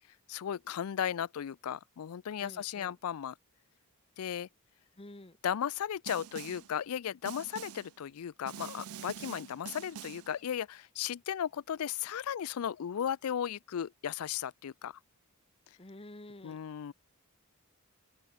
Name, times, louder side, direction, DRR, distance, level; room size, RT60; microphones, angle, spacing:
voice 1, 0.3-3.4 4.2-4.5 5.4-14.9 16.4-16.9, left 9 dB, 80° left, 0.4 m, -36 dB
voice 2, 2.4-2.9 5.0-5.4 15.8-16.6, left 1 dB, 25° left, 1.2 m, -50 dB
Snare drum, 6.1-6.7 7.3-7.9 8.5-10.3, right 9 dB, 85° right, 0.5 m, -45 dB
open air
head